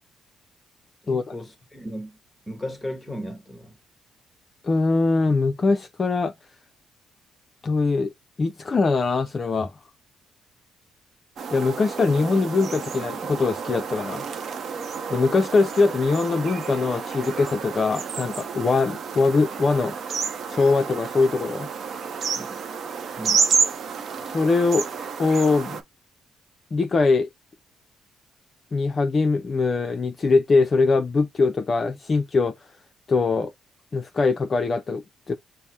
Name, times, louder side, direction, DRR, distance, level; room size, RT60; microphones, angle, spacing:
voice 1, 1.0-2.2 2.5-3.7 22.4-22.6 23.2-23.5, equal, 10° left, 1.2 m, -36 dB
voice 2, 4.6-6.3 7.6-8.1 8.4-9.7 11.5-14.3 15.1-20.0 20.5-21.7 24.2-24.9 25.2-25.8 26.7-27.3 28.7-32.6 33.1-33.5 33.9-35.4, left 3 dB, 40° left, 0.4 m, -22 dB
sound 1, 11.4-25.8, right 6 dB, 60° right, 0.7 m, -30 dB
5.5 x 2.0 x 3.0 m
cardioid pair, 90°, 0 cm